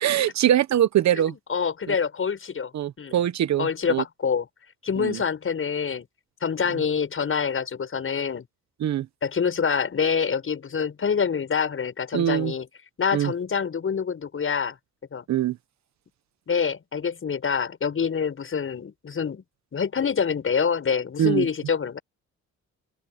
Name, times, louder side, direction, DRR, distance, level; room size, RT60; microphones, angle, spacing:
voice 1, 0.0-1.3 2.7-4.0 5.0-5.2 8.8-9.1 12.1-12.5 13.1-13.3 15.3-15.6 21.2-21.4, right 11 dB, 65° right, 1.2 m, -23 dB
voice 2, 1.3-2.7 3.0-3.2 3.6-4.5 4.8-6.1 6.4-8.5 9.2-12.7 13.0-14.8 15.1-15.2 16.5-19.4 19.7-22.0, left 6 dB, 45° left, 7.1 m, -26 dB
open air
cardioid pair, 90°, 30 cm